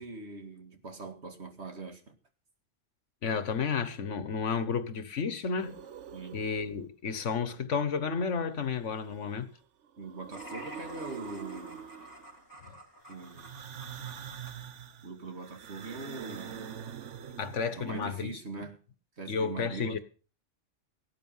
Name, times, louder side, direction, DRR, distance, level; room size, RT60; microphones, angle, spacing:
voice 1, 0.0-2.2 6.1-6.4 10.0-11.9 13.1-13.5 15.0-16.8 17.8-18.8 19.2-20.0, right 3 dB, 65° right, 2.3 m, -42 dB
voice 2, 3.2-5.8 6.3-9.5 12.6-12.7 17.4-18.4 19.3-20.0, left 5 dB, 85° left, 1.6 m, -32 dB
sound 1, 5.6-6.8 8.6-9.5 9.8-12.4 13.2-18.0, right 8 dB, 80° right, 1.2 m, -45 dB
sound 2, 10.3-14.6, equal, 15° left, 4.3 m, -49 dB
17.5 x 9.1 x 5.6 m
omnidirectional pair, 1.2 m